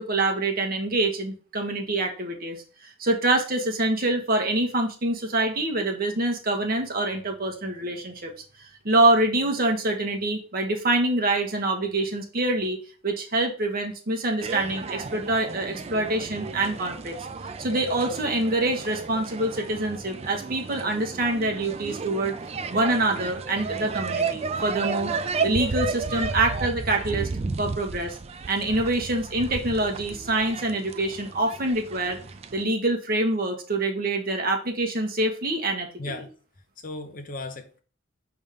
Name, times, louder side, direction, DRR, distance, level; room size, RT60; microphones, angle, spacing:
voice 1, 0.0-2.6 2.8-8.3 8.6-12.8 13.0-17.2 17.6-22.3 22.7-25.1 25.4-27.3 27.6-28.2 28.5-32.2 32.5-36.3, right 2 dB, 45° right, 1.3 m, -25 dB
sound 1, 14.4-32.6, right 4 dB, 30° right, 0.4 m, -33 dB
voice 2, 36.0-36.3 36.8-37.8, left 2 dB, 40° left, 0.9 m, -36 dB
5.2 x 3.6 x 5.2 m
head